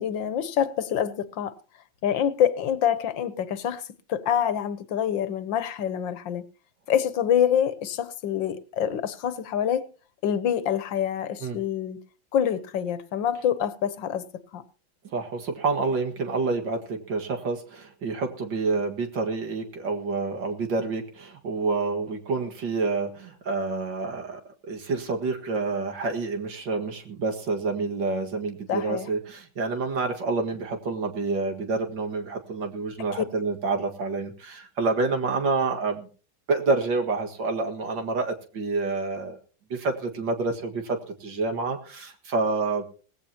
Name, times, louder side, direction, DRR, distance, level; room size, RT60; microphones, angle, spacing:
voice 1, 0.0-1.6 2.0-3.8 4.1-6.5 6.9-9.9 10.2-12.0 12.3-14.3 14.5-14.6 28.7-29.1 33.2-33.3, left 9 dB, 80° left, 1.7 m, -26 dB
voice 2, 15.0-24.4 24.7-36.1 36.5-39.4 39.7-42.8, right 3 dB, 75° right, 2.5 m, -28 dB
18.5 x 15.5 x 2.9 m
omnidirectional pair, 2.0 m